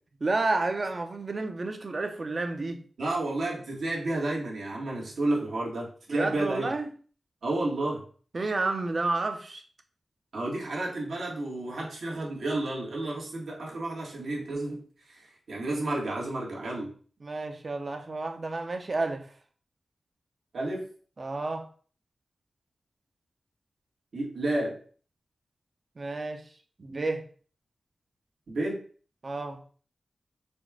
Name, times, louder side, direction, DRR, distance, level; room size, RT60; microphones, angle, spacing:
voice 1, 0.2-2.8 6.1-6.9 8.3-9.6 17.2-19.3 21.2-21.7 26.0-26.4 26.8-27.2 29.2-29.6, right 3 dB, 50° right, 0.7 m, -30 dB
voice 2, 3.0-6.7 7.4-8.0 10.3-14.8 15.2-16.9 20.5-20.9 24.1-24.8 28.5-28.8, right 2 dB, 85° right, 1.5 m, -31 dB
4.3 x 2.3 x 4.7 m
wide cardioid pair, 70°, 0 cm